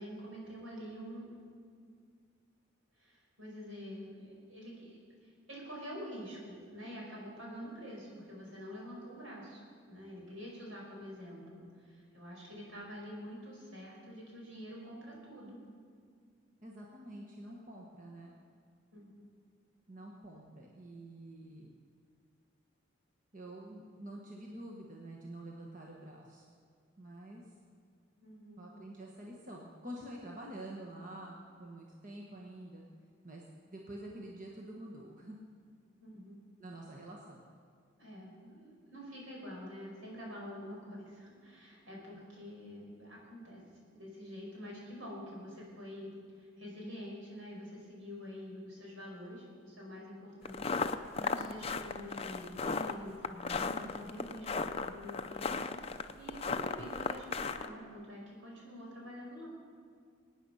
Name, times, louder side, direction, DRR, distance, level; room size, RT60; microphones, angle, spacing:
voice 1, 0.0-1.4 2.9-15.6 18.9-19.1 28.2-28.8 36.0-36.3 38.0-43.7 44.0-59.5, equal, 75° right, -3 dB, 5.0 m, -47 dB
voice 2, 16.6-18.3 19.9-21.7 23.3-26.4 27.0-27.5 28.6-32.9 33.2-35.4 36.6-37.4, right 1 dB, 40° right, -2 dB, 1.3 m, -47 dB
sound 1, 50.4-57.7, left 4 dB, 30° left, 0.5 m, -35 dB
22.5 x 9.4 x 5.6 m, 2.1 s
head